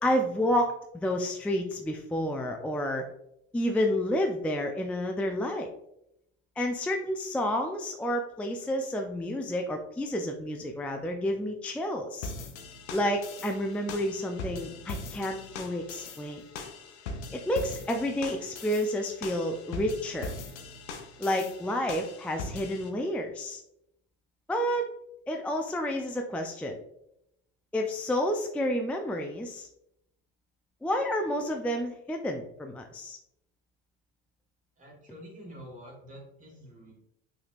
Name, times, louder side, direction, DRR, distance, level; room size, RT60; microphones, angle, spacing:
voice 1, 0.0-3.0 3.5-5.7 6.6-12.3 12.9-16.4 17.3-20.3 21.2-23.6 24.5-24.9 25.3-26.8 27.7-29.7 30.8-33.2, equal, 5° left, 3 dB, 0.4 m, -30 dB
sound 1, 12.2-22.9, left 3 dB, 85° left, 0.8 m, -41 dB
voice 2, 34.8-36.9, equal, 25° right, -1 dB, 1.6 m, -47 dB
5.9 x 3.4 x 2.4 m, 0.78 s
hypercardioid pair, 85°, 34 cm